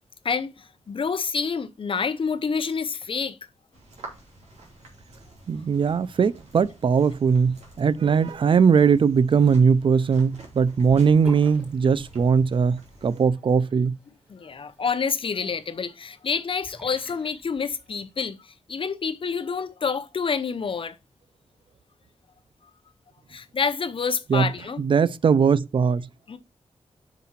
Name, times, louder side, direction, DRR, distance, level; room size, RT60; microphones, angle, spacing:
voice 1, 0.2-3.4 14.3-18.4 18.7-21.0 23.3-24.8 26.3-26.4, left 5 dB, 50° left, 0.7 m, -28 dB
sound 1, 3.7-13.2, right 2 dB, 80° right, 2.9 m, -48 dB
voice 2, 5.5-14.0 24.3-24.5 24.8-26.1, right 6 dB, 50° right, 0.4 m, -20 dB
Sink (filling or washing) / Bathtub (filling or washing), 10.9-18.2, equal, 5° right, 3.2 m, -49 dB
5.8 x 4.7 x 5.7 m
wide cardioid pair, 85°, 11 cm